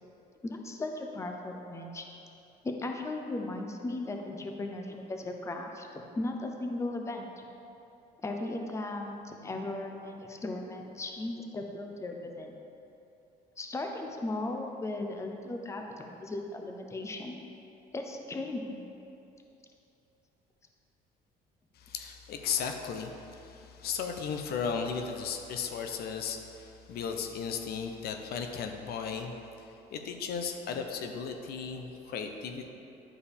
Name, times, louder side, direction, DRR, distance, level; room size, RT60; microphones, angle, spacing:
voice 1, 0.4-2.1 2.6-7.4 8.2-12.5 13.6-17.4 17.9-18.8, left 2 dB, 15° left, 3 dB, 0.6 m, -37 dB
voice 2, 21.8-29.3 29.9-32.7, left 6 dB, 65° left, 5 dB, 0.6 m, -35 dB
10.5 x 4.7 x 3.4 m, 2.9 s
cardioid pair, 110°, 17 cm